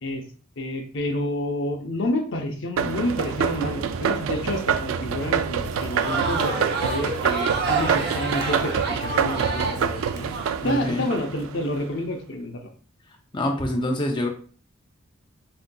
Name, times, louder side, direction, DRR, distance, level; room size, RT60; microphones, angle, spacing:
voice 1, 0.6-10.3 10.6-12.6, left 1 dB, 60° left, 4 dB, 0.7 m, -29 dB
sound 1, 2.8-11.9, right 7 dB, 90° right, 0.4 m, -27 dB
Crowd, 5.6-10.5, right 4 dB, 55° right, 0.8 m, -28 dB
voice 2, 10.6-11.0 13.3-14.3, left 1 dB, 25° left, 1 dB, 0.5 m, -25 dB
7.6 x 2.7 x 2.3 m, 0.42 s
head